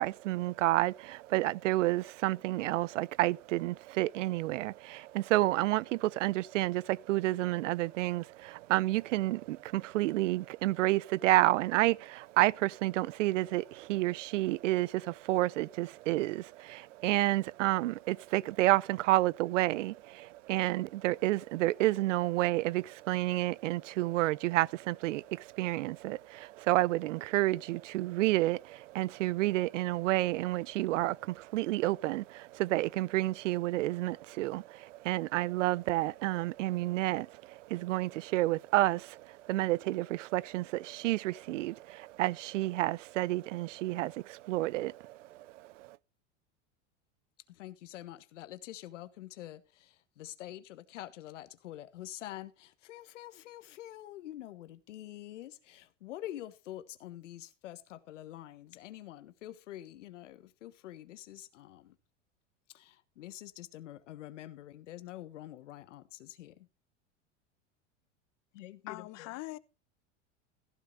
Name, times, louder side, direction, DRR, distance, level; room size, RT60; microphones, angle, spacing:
voice 1, 0.0-46.0, right 17 dB, 85° right, 0.5 m, -30 dB
voice 2, 47.5-62.0 62.7-66.7 68.5-69.3, left 13 dB, 80° left, 1.4 m, -46 dB
voice 3, 68.9-69.6, left 20 dB, 45° left, 0.8 m, -41 dB
15.0 x 12.5 x 2.5 m
hypercardioid pair, 110°, 36 cm